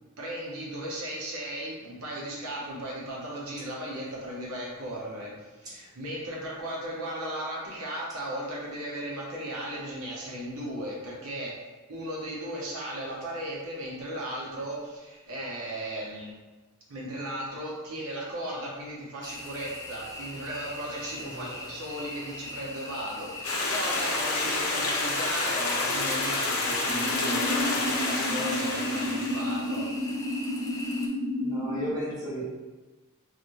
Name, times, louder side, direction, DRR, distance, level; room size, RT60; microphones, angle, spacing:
voice 1, 0.2-11.5 11.9-16.3 16.9-29.9, right 1 dB, 75° right, -4 dB, 1.0 m, -36 dB
sound 1, 19.2-31.1, left 1 dB, 15° left, 0.3 m, -40 dB
voice 2, 21.2-21.5 31.4-32.4, equal, 15° right, -7 dB, 0.8 m, -34 dB
Stream, 23.4-29.5, left 2 dB, 75° left, 0.7 m, -29 dB
sound 2, 26.9-31.9, left 1 dB, 55° right, 0.7 m, -31 dB
4.1 x 2.6 x 3.1 m, 1.2 s
head